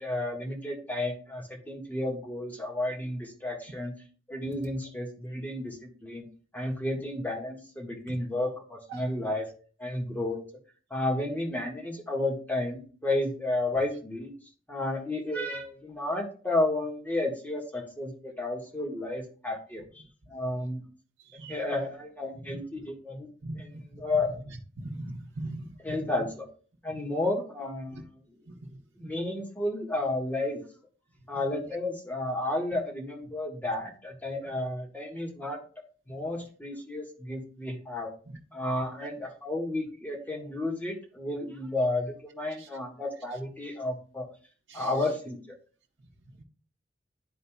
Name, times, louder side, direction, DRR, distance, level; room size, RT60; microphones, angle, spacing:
voice 1, 0.0-3.9 4.3-6.3 6.5-9.5 9.8-10.4 10.9-14.3 14.7-19.8 20.3-20.8 21.5-23.3 23.5-24.4 25.8-26.4 26.8-28.2 29.0-30.6 31.3-35.6 36.1-38.1 38.5-44.3 44.7-45.5, left 2 dB, 10° left, -1 dB, 1.5 m, -32 dB
voice 2, 24.8-25.7 27.9-28.0 29.0-29.1 38.3-38.4 42.6-42.7 44.7-44.9, right 2 dB, 85° right, -2 dB, 0.8 m, -39 dB
11.5 x 4.0 x 2.3 m, 0.40 s
head